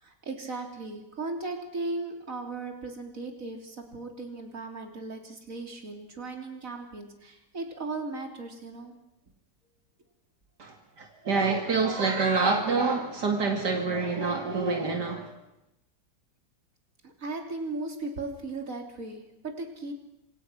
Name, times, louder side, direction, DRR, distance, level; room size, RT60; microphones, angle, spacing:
voice 1, 0.0-9.0 17.0-19.9, right 3 dB, 50° right, 3 dB, 3.7 m, -37 dB
voice 2, 10.6-15.3, right 4 dB, 75° right, 3 dB, 2.9 m, -27 dB
26.5 x 26.0 x 6.2 m, 0.87 s
omnidirectional pair, 1.8 m